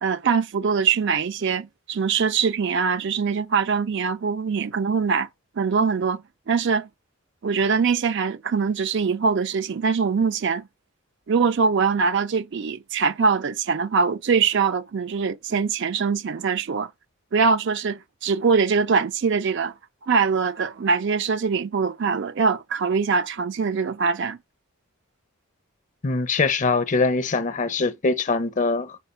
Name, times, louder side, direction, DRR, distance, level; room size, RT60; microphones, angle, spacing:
voice 1, 0.0-5.3 5.6-6.9 7.4-10.7 11.3-16.9 17.3-19.7 20.1-24.4, right 5 dB, 55° right, 0.4 m, -23 dB
voice 2, 26.0-29.0, left 4 dB, 35° left, 0.6 m, -23 dB
4.8 x 4.5 x 5.6 m
head